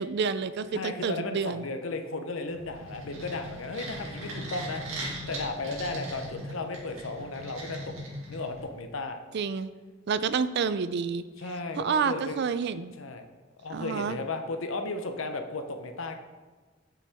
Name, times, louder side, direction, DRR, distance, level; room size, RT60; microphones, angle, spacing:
voice 1, 0.0-1.6 9.3-9.7 10.1-11.2 11.8-12.9 13.7-14.2, right 5 dB, 55° right, 14 dB, 0.4 m, -29 dB
voice 2, 0.7-7.9 8.3-9.2 11.4-12.4 13.0-13.3 13.6-16.1, left 3 dB, 80° left, 6 dB, 0.8 m, -35 dB
sound 1, 2.5-8.8, right 1 dB, 85° right, 2.4 m, -39 dB
8.6 x 7.1 x 3.5 m, 1.4 s
head